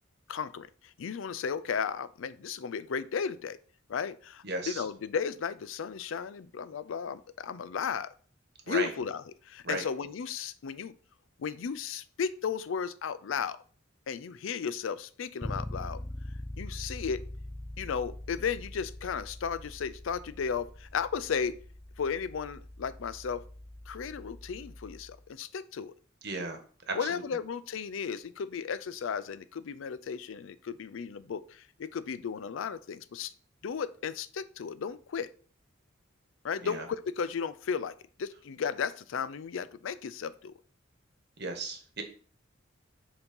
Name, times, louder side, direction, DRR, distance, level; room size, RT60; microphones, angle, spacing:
voice 1, 0.3-3.6 3.9-8.1 8.7-11.0 11.4-13.6 14.1-16.0 16.6-17.3 17.8-21.6 22.0-23.4 23.9-25.9 26.9-33.3 33.6-35.3 36.4-40.5, left 6 dB, 75° left, 16 dB, 0.4 m, -35 dB
voice 2, 4.4-4.8 8.7-8.9 9.6-9.8 26.2-26.6 26.9-27.1 36.6-36.8 41.4-42.0, right 3 dB, 55° right, 5 dB, 1.2 m, -34 dB
Bass guitar, 15.4-25.3, left 1 dB, 5° left, 0.3 m, -43 dB
7.0 x 2.8 x 5.3 m, 0.43 s
head